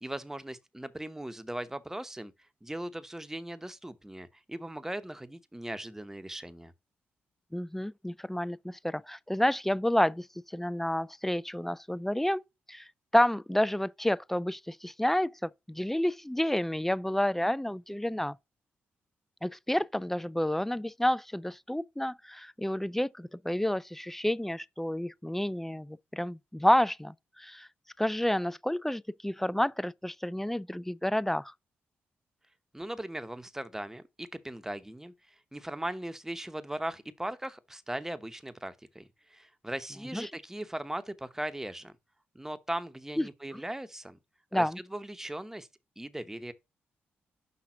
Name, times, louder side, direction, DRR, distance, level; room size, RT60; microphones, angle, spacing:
voice 1, 0.0-2.3 2.6-6.7 32.7-42.0 42.3-44.2 44.5-44.6 44.9-45.7 46.0-46.5, right 1 dB, 10° right, 0.9 m, -39 dB
voice 2, 7.5-12.4 12.7-12.9 13.1-18.4 19.4-27.7 28.0-31.5 40.1-40.3 43.2-43.3 43.5-43.6 44.5-44.8, left 1 dB, 5° left, 0.3 m, -30 dB
5.9 x 3.6 x 5.9 m
supercardioid pair, 55°, 4 cm